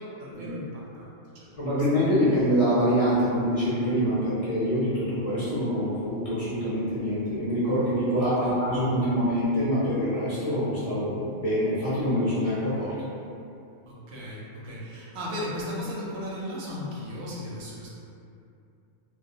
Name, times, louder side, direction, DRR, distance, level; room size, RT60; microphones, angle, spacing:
voice 1, 0.0-1.5 2.0-2.4 8.2-8.6 13.9-17.9, left 1 dB, 65° right, -5 dB, 0.7 m, -36 dB
voice 2, 1.6-12.9, equal, 45° left, -11 dB, 0.5 m, -25 dB
2.3 x 2.2 x 2.6 m, 2.5 s
omnidirectional pair, 1.3 m